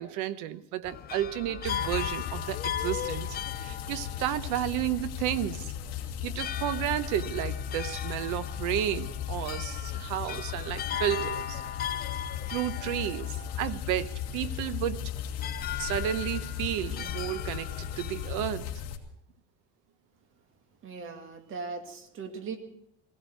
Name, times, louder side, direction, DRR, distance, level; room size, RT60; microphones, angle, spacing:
voice 1, 0.0-3.3 3.6-5.7 6.2-11.6 12.5-15.1 15.8-18.7, right 12 dB, 70° right, 14 dB, 1.0 m, -32 dB
sound 1, 0.8-18.3, left 9 dB, 30° left, 0.6 m, -39 dB
sound 2, 1.6-19.0, left 9 dB, 55° left, 2.1 m, -36 dB
voice 2, 20.8-22.6, right 4 dB, 40° right, 6 dB, 2.0 m, -39 dB
17.5 x 17.0 x 4.6 m, 0.77 s
cardioid pair, 150°, 32 cm